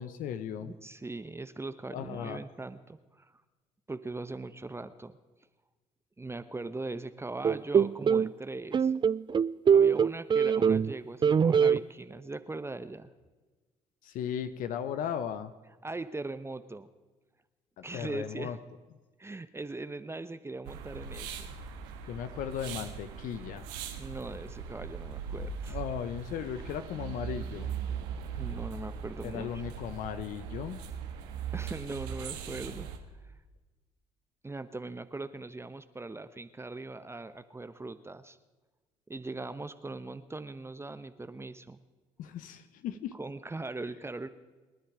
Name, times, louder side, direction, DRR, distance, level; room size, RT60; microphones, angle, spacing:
voice 1, 0.0-0.7 1.9-2.4 14.0-15.5 17.8-18.6 22.1-23.7 25.7-27.7 29.2-30.8 42.2-43.1, left 9 dB, 70° left, 11 dB, 0.9 m, -36 dB
voice 2, 0.6-3.4 3.9-5.1 6.2-8.9 9.7-13.1 15.8-16.9 17.8-18.6 19.2-21.6 24.0-25.8 26.9-27.2 28.3-29.6 31.5-32.9 33.2-33.3 34.4-38.4 39.1-41.8 43.1-44.3, right 2 dB, 20° right, 11 dB, 1.0 m, -40 dB
sound 1, 7.4-8.3 8.7-10.9 11.2-11.8, right 7 dB, 35° right, 0.5 m, -23 dB
sound 2, 20.6-33.0, right 7 dB, 85° right, 1.6 m, -40 dB
28.0 x 10.5 x 5.0 m, 1.3 s
supercardioid pair, 65°, 14 cm